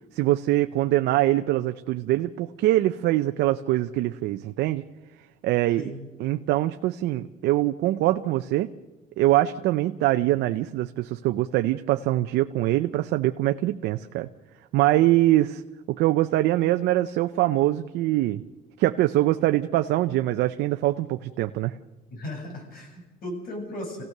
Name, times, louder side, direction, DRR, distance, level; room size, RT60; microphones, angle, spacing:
voice 1, 0.1-4.8 5.4-5.8 6.2-8.7 9.2-14.3 14.7-15.6 15.9-18.4 18.8-21.7, right 15 dB, 80° right, 8 dB, 0.6 m, -23 dB
voice 2, 5.8-6.1 22.1-24.0, left 1 dB, 60° left, 1 dB, 8.0 m, -36 dB
27.0 x 16.5 x 6.6 m, 1.2 s
cardioid pair, 110°, 17 cm